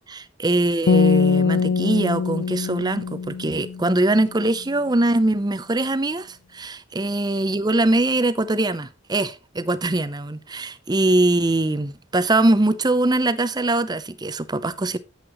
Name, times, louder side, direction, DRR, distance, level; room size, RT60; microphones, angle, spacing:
voice 1, 0.0-15.0, right 2 dB, 20° right, 0.6 m, -22 dB
sound 1, 0.9-4.1, left 5 dB, 90° left, 0.4 m, -22 dB
11.0 x 8.1 x 3.0 m
head